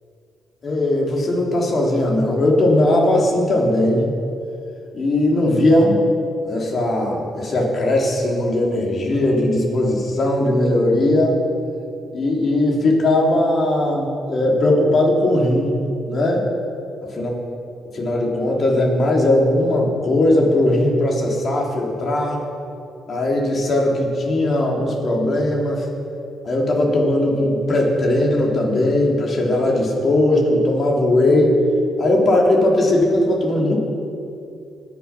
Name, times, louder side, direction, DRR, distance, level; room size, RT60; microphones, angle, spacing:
voice 1, 0.6-4.1 4.9-6.0 6.4-11.4 12.1-15.8 16.1-16.5 17.2-17.3 17.9-22.5 23.1-25.9 26.4-31.5 32.0-33.8, left 1 dB, 45° left, -1 dB, 3.3 m, -18 dB
20.0 x 7.1 x 6.0 m, 2.6 s
cardioid pair, 90°, 0 cm